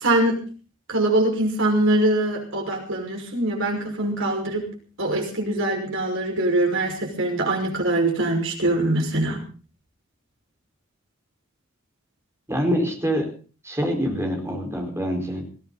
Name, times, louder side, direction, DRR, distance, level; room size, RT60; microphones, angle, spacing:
voice 1, 0.0-0.4 0.9-4.7 5.0-9.4, right 1 dB, 65° right, 2 dB, 5.6 m, -23 dB
voice 2, 12.5-13.3 13.6-15.4, equal, 15° right, 2 dB, 4.8 m, -25 dB
20.0 x 16.0 x 4.1 m, 0.38 s
head